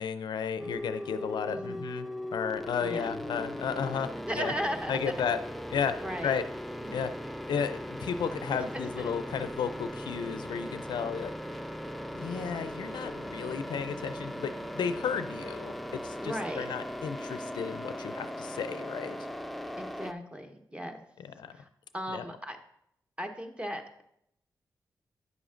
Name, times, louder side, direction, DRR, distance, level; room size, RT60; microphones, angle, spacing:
voice 1, 0.0-4.5 4.9-5.4 5.7-6.0 6.2-6.4 6.9-7.1 7.5-11.3 12.1-19.2 21.2-21.5 22.1-22.3, left 7 dB, 80° left, 11 dB, 0.4 m, -33 dB
sound 1, 0.6-20.1, equal, ahead, 0.5 m, -39 dB
voice 2, 1.5-1.9 2.8-3.1 4.3-5.1 6.0-6.4 6.8-7.0 12.2-12.7 16.2-16.7 19.8-21.0 21.5-21.7 21.9-22.6 23.2-24.0, equal, 15° right, 5 dB, 1.1 m, -37 dB
9.6 x 7.0 x 2.5 m, 0.75 s
cardioid pair, 55°, 7 cm